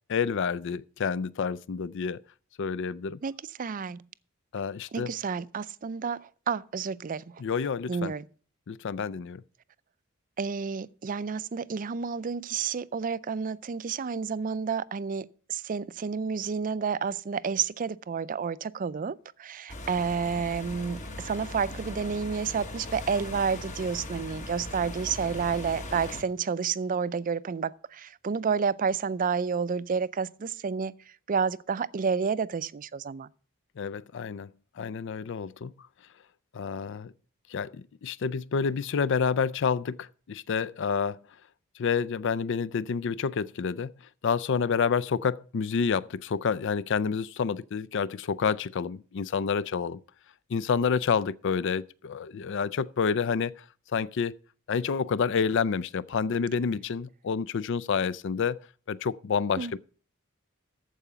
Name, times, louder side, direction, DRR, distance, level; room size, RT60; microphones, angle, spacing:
voice 1, 0.1-2.2 2.6-3.2 4.5-5.1 7.4-8.1 8.7-9.4 33.8-34.5 34.8-35.7 36.5-37.1 37.5-41.2 41.8-43.9 44.2-50.0 50.5-53.6 53.9-54.3 54.7-58.6 58.9-59.8, left 6 dB, 60° left, 0.4 m, -28 dB
voice 2, 3.2-4.0 4.9-7.4 7.9-8.2 10.4-30.9 31.3-33.3 59.6-59.8, right 6 dB, 40° right, 0.4 m, -30 dB
sound 1, 19.7-26.2, left 1 dB, 35° left, 1.3 m, -39 dB
14.0 x 4.9 x 6.8 m
head